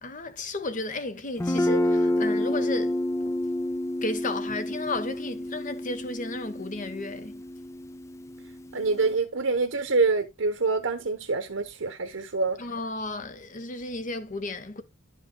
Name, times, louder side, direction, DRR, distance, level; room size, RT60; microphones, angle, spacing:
voice 1, 0.0-3.0 4.0-7.4 12.6-14.8, left 2 dB, 40° left, 1.0 m, -33 dB
Guitar, 1.4-9.1, left 1 dB, 15° left, 0.4 m, -29 dB
voice 2, 8.7-12.6, right 3 dB, 80° right, 1.0 m, -26 dB
11.5 x 5.7 x 2.2 m
head